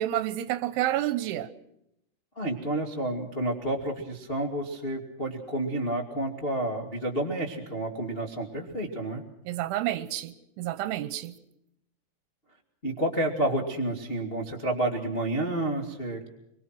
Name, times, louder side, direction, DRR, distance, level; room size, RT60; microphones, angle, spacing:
voice 1, 0.0-1.5 9.5-11.4, right 13 dB, 75° right, 3.1 m, -29 dB
voice 2, 2.3-9.2 12.8-16.2, right 1 dB, 55° left, 0.6 m, -30 dB
24.5 x 24.0 x 6.1 m
omnidirectional pair, 6.0 m